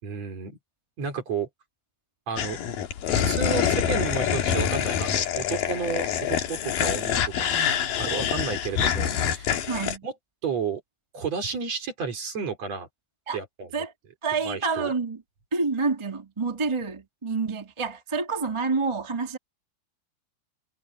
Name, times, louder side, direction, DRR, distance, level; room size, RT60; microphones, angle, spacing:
voice 1, 0.0-0.6 1.0-1.5 2.3-2.6 3.1-7.6 8.0-9.6 10.0-10.1 10.4-10.8 11.1-12.9 13.3-13.7 14.4-14.9, right 5 dB, 45° right, 4.7 m, -32 dB
sound 1, 2.4-10.0, left 9 dB, 65° left, 3.3 m, -26 dB
voice 2, 9.7-10.0 13.3-13.4 13.7-13.9 14.2-15.2 15.5-19.4, right 4 dB, 15° right, 1.0 m, -28 dB
omnidirectional pair, 4.3 m